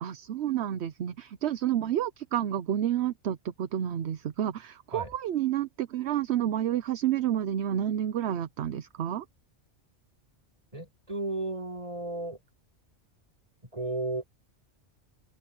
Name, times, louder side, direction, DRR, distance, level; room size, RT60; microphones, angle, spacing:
voice 1, 0.0-9.2, right 11 dB, 70° right, 1.0 m, -30 dB
voice 2, 10.7-12.4 13.7-14.3, right 2 dB, 30° right, 5.8 m, -34 dB
open air
omnidirectional pair, 1.2 m